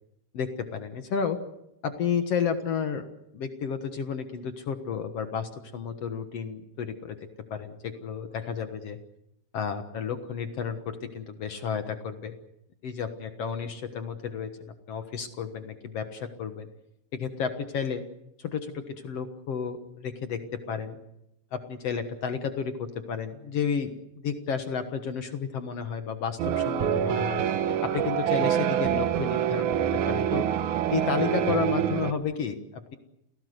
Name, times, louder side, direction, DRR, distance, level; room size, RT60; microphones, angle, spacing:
voice 1, 0.3-1.4 1.8-3.0 3.3-7.2 7.5-9.0 9.5-12.3 12.8-16.7 17.1-18.0 18.4-21.0 21.5-27.4 27.8-30.5 30.9-32.9, left 6 dB, 75° left, 7 dB, 1.4 m, -32 dB
sound 1, 26.4-32.1, right 10 dB, 70° right, 1.8 m, -26 dB
29.0 x 18.0 x 8.0 m, 0.85 s
omnidirectional pair, 5.0 m